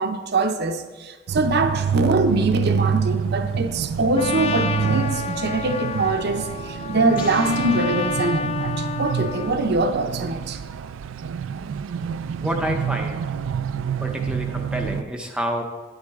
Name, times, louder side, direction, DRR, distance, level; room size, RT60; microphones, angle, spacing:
voice 1, 0.0-10.6, right 2 dB, 55° right, 0.7 m, -23 dB
sound 1, 1.3-15.0, right 7 dB, 80° right, 0.3 m, -27 dB
Trumpet, 4.2-9.6, left 5 dB, 30° left, 0.3 m, -30 dB
sound 2, 7.1-9.0, left 3 dB, 45° left, 1.4 m, -42 dB
voice 2, 12.4-13.2 14.0-15.6, equal, 5° right, 0.6 m, -28 dB
9.9 x 9.4 x 3.6 m
head